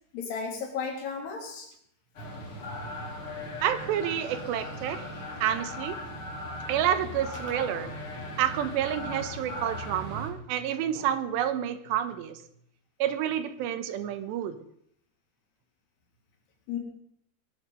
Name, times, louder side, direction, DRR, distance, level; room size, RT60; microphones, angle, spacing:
voice 1, 0.1-1.7 16.7-16.8, left 5 dB, 70° left, 1 dB, 5.2 m, -34 dB
sound 1, 2.2-10.3, left 1 dB, 35° left, 3.6 m, -38 dB
voice 2, 3.6-5.0 5.4-6.0 6.7-7.9 8.4-12.4 13.0-14.6, right 10 dB, 80° right, 11 dB, 3.2 m, -29 dB
21.0 x 11.5 x 5.6 m, 0.70 s
omnidirectional pair, 5.0 m